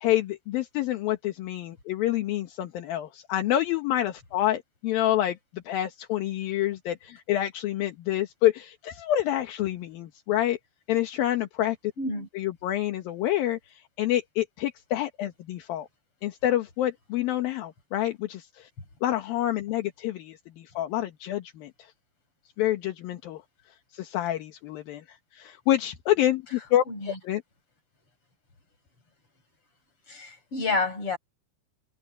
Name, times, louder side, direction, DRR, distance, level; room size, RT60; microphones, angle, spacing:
voice 1, 0.0-10.6 10.9-11.8 12.3-15.9 16.2-18.7 19.0-21.7 22.6-23.4 23.9-25.0 25.3-26.8 27.2-27.4, left 13 dB, 65° left, 2.6 m, -27 dB
voice 2, 12.0-12.3 27.0-27.1 30.1-31.2, left 3 dB, 30° left, 6.9 m, -29 dB
omnidirectional pair, 5.4 m